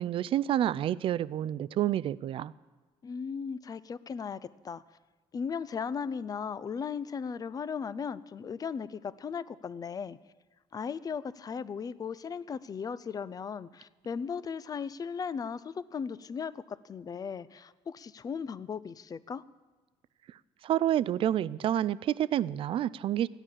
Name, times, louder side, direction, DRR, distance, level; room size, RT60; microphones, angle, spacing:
voice 1, 0.0-2.5 20.6-23.3, right 11 dB, 50° right, 20 dB, 0.4 m, -28 dB
voice 2, 3.0-4.8 5.3-10.2 10.7-19.4, left 6 dB, 30° left, 17 dB, 0.5 m, -37 dB
14.0 x 10.0 x 7.4 m, 1.3 s
cardioid pair, 100°, 12 cm